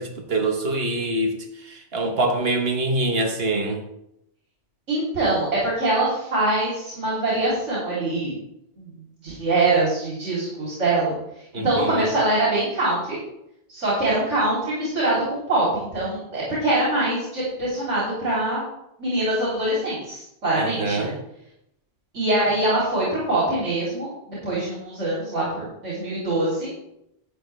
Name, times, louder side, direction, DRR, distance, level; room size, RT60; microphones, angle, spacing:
voice 1, 0.0-3.8 11.5-12.1 20.6-21.1, right 2 dB, 55° right, 4 dB, 1.5 m, -25 dB
voice 2, 4.9-8.3 8.8-8.9 9.2-11.2 11.5-13.2 13.7-18.6 19.0-21.1 22.1-26.7, right 2 dB, 70° right, -7 dB, 3.6 m, -23 dB
11.5 x 8.1 x 3.4 m, 0.81 s
omnidirectional pair, 1.2 m